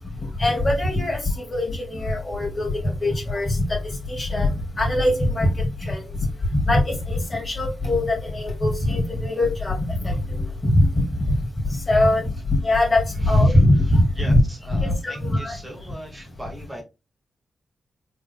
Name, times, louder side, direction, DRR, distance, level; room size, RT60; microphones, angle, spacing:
voice 1, 0.4-1.2 1.5-2.7 3.0-3.6 4.1-6.0 6.6-11.4 11.9-12.2 12.5-14.4 14.7-15.5, left 1 dB, 35° left, 1 dB, 2.3 m, -21 dB
voice 2, 13.2-16.8, equal, 20° right, 0 dB, 1.5 m, -40 dB
4.6 x 3.7 x 2.3 m, 0.27 s
cardioid pair, 55°, 0 cm